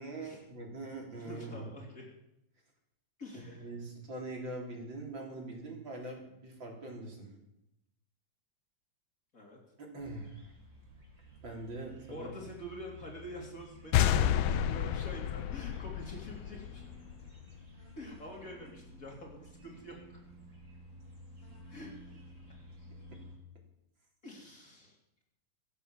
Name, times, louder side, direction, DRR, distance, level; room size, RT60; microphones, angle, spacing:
voice 1, 0.0-1.7 3.3-7.3 9.8-10.4 11.4-12.3, right 2 dB, 75° right, 0 dB, 4.5 m, -43 dB
voice 2, 1.2-2.1 3.2-3.7 9.3-9.6 12.1-16.9 18.0-20.2 21.7-21.9 24.2-24.9, left 1 dB, 45° left, -1 dB, 3.8 m, -46 dB
sound 1, 10.0-23.4, equal, 40° right, 4.7 m, -54 dB
sound 2, 13.9-17.4, left 10 dB, 85° left, 1.5 m, -30 dB
24.0 x 8.1 x 7.3 m, 0.85 s
omnidirectional pair, 2.1 m